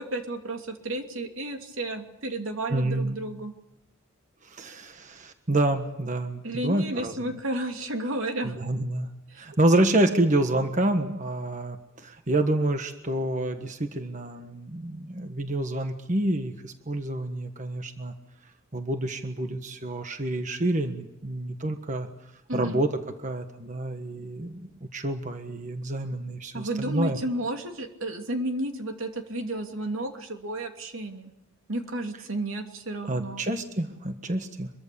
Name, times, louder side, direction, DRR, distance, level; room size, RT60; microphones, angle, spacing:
voice 1, 0.0-3.5 6.4-8.6 9.3-9.4 22.5-22.8 26.5-31.3 31.7-33.4, right 1 dB, 85° right, 4 dB, 3.0 m, -32 dB
voice 2, 2.7-3.2 4.4-7.4 8.4-9.1 9.4-18.1 18.7-22.1 22.5-22.9 23.2-27.2 33.0-34.7, right 1 dB, 35° right, 7 dB, 1.4 m, -28 dB
24.5 x 23.5 x 7.0 m, 0.92 s
head